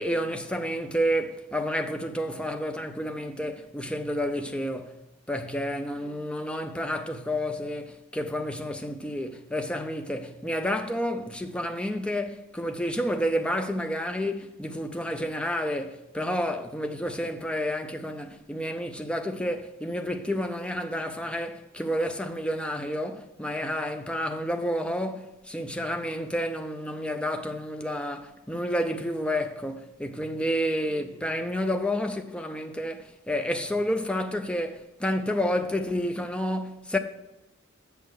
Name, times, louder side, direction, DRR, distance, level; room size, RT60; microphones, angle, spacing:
voice 1, 0.0-5.0 5.3-37.0, equal, 5° left, 0.5 m, -30 dB
6.9 x 6.5 x 6.4 m
head